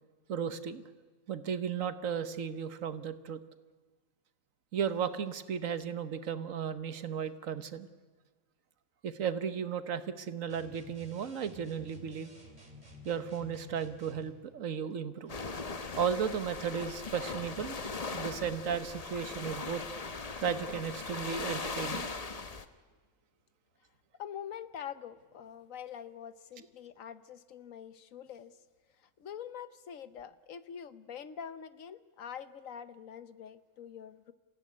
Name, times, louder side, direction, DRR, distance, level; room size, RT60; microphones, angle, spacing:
voice 1, 0.3-0.8 1.3-3.4 4.7-7.9 9.0-12.3 13.0-15.3 16.0-17.8 18.1-19.8 20.4-22.1, right 7 dB, 75° right, 12 dB, 1.5 m, -35 dB
sound 1, 10.5-14.3, left 1 dB, 30° right, 3.3 m, -52 dB
sound 2, 15.3-22.6, left 4 dB, 30° left, 1.0 m, -39 dB
voice 2, 24.2-28.6 29.0-34.3, left 8 dB, 75° left, 13 dB, 1.3 m, -45 dB
27.5 x 16.0 x 9.8 m, 1.4 s
omnidirectional pair, 1.4 m